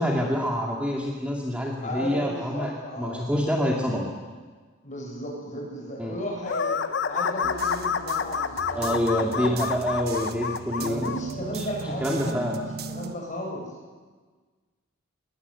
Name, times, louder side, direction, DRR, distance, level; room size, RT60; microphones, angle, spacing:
voice 1, 0.0-4.1 6.0-6.1 8.7-11.1 11.5-11.7 12.0-12.7, equal, 5° right, -2 dB, 2.3 m, -27 dB
voice 2, 1.8-3.2 4.8-6.8 7.1-9.6 10.8-13.7, equal, 35° left, -1 dB, 7.6 m, -35 dB
sound 1, 6.4-11.2, left 6 dB, 55° left, 0.8 m, -28 dB
sound 2, 7.4-13.2, right 4 dB, 50° right, 1.3 m, -38 dB
20.5 x 20.5 x 8.3 m, 1.4 s
head